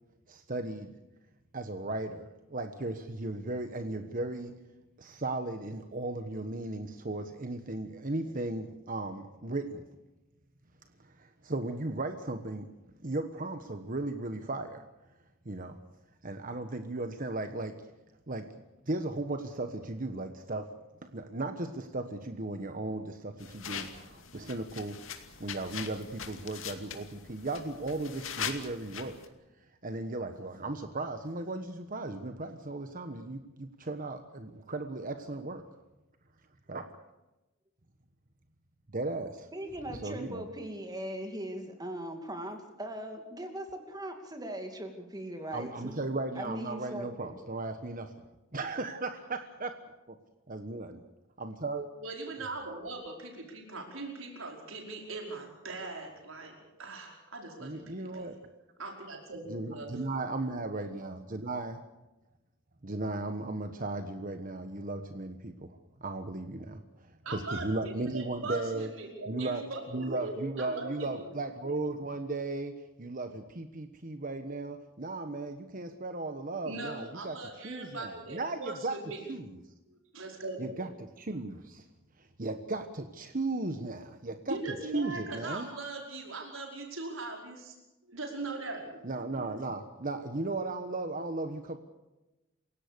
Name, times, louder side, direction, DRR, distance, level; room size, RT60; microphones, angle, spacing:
voice 1, 0.3-0.9 1.5-4.5 5.0-9.8 11.0-12.7 13.0-14.8 15.4-15.8 16.2-17.7 18.3-18.5 18.9-20.7 21.0-25.0 25.4-29.2 29.8-35.6 36.7-36.9 38.9-39.5 39.9-40.4 45.5-48.1 48.5-49.7 50.1-50.2 50.5-51.0 51.4-51.9 57.6-58.4 59.5-61.8 62.8-68.9 69.3-69.6 69.9-77.4 77.6-78.9 79.3-79.6 80.6-81.9 82.2-84.6 84.9-85.7 89.0-91.8, right 2 dB, 45° right, 7 dB, 1.3 m, -36 dB
sound 1, 23.4-29.3, left 7 dB, 80° left, 2.4 m, -41 dB
voice 2, 39.5-46.0 46.3-47.4, right 1 dB, 20° right, 5 dB, 2.6 m, -40 dB
voice 3, 52.0-58.3 58.8-59.9 67.2-71.3 76.6-79.2 79.9-80.8 84.4-87.7 88.1-89.0, right 2 dB, 90° right, 1 dB, 5.2 m, -40 dB
28.5 x 17.0 x 6.9 m, 1.0 s
head